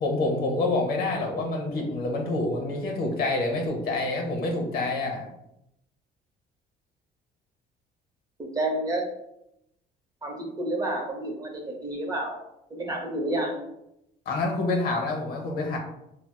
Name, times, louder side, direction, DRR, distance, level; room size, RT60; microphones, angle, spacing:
voice 1, 0.0-5.2 14.3-15.8, left 2 dB, 65° left, 1 dB, 0.8 m, -27 dB
voice 2, 8.4-9.0 10.2-12.4 12.7-13.6, right 1 dB, 20° right, 0 dB, 0.7 m, -30 dB
4.3 x 2.0 x 2.3 m, 0.83 s
cardioid pair, 110°, 17 cm